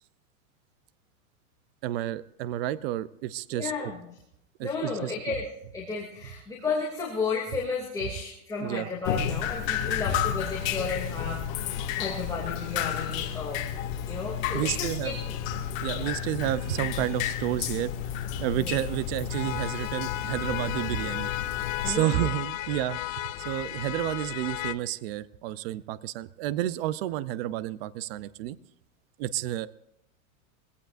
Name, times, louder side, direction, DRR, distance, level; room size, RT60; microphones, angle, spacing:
voice 1, 1.8-3.9 4.6-5.3 8.6-8.9 14.5-15.1 15.8-17.9 18.4-21.3 21.8-28.6 29.2-29.7, right 13 dB, 45° right, 17 dB, 0.6 m, -30 dB
voice 2, 3.5-4.0 4.6-5.5 5.7-13.6 14.0-15.3 15.9-16.2 18.5-18.7 21.8-22.3, left 4 dB, 10° left, -3 dB, 2.5 m, -33 dB
Drip, 9.0-21.9, left 9 dB, 45° left, 2.4 m, -32 dB
sound 1, 9.7-24.7, left 15 dB, 70° left, 1.1 m, -38 dB
22.5 x 17.0 x 2.6 m, 0.80 s
supercardioid pair, 155°, 41 cm